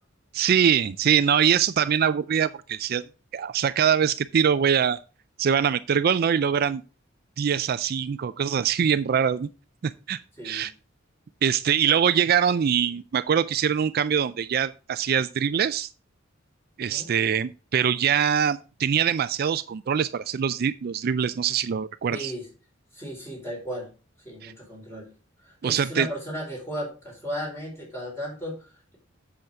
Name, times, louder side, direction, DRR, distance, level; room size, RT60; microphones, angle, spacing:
voice 1, 0.3-3.0 3.3-5.0 5.4-6.8 7.4-9.5 9.8-10.2 10.4-10.7 11.4-15.9 16.8-22.3 24.4-24.5 25.6-26.1, right 8 dB, 50° right, 0.4 m, -23 dB
voice 2, 10.4-10.7 16.9-17.1 22.1-22.5 22.9-23.9 24.2-25.1 25.4-29.0, equal, 15° left, 4.4 m, -35 dB
8.0 x 7.1 x 3.4 m
head